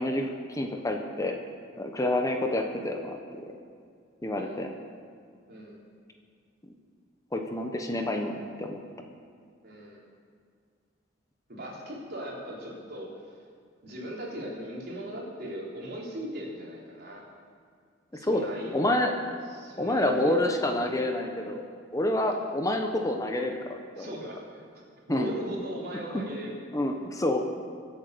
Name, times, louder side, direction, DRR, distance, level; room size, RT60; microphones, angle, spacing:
voice 1, 0.0-1.3 1.8-3.2 4.2-4.7 7.3-8.8 18.2-18.5 18.7-19.1 19.8-21.6 21.9-24.1 25.1-25.3 26.1-26.2 26.7-27.4, left 1 dB, 20° left, 4 dB, 1.0 m, -28 dB
voice 2, 4.3-4.6 5.5-5.8 9.6-10.0 11.5-13.4 13.8-17.2 18.1-18.9 19.5-20.4 22.2-22.4 24.0-24.8 25.1-26.6, equal, 55° right, -4 dB, 4.0 m, -39 dB
24.0 x 8.2 x 6.8 m, 2.2 s
head